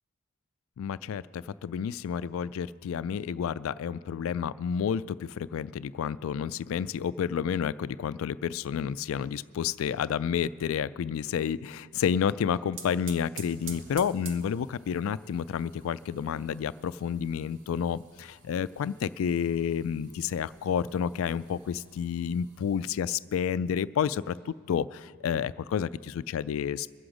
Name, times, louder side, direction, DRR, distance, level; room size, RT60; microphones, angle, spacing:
voice 1, 0.8-26.9, left 7 dB, 80° left, 18 dB, 0.3 m, -30 dB
sound 1, 12.3-22.9, right 5 dB, 65° right, 1.1 m, -50 dB
23.0 x 7.8 x 5.0 m, 2.3 s
head